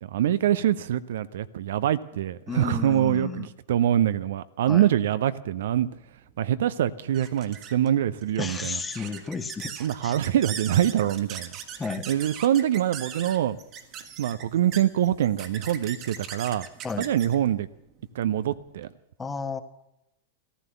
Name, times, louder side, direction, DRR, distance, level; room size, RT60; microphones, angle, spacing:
voice 1, 0.0-5.9 6.4-8.8 9.8-11.5 12.1-13.6 14.2-16.7 17.0-17.7 18.1-18.9, right 11 dB, 60° right, 14 dB, 0.6 m, -24 dB
voice 2, 2.5-3.5 4.7-4.9 8.4-9.7 10.0-10.1 11.8-12.1 16.8-17.1 19.2-19.6, left 4 dB, 15° left, 9 dB, 1.3 m, -32 dB
sound 1, 6.0-18.9, right 8 dB, 35° right, 1.5 m, -41 dB
15.0 x 14.5 x 6.8 m, 0.86 s
figure-of-eight pair, 90°, 0 cm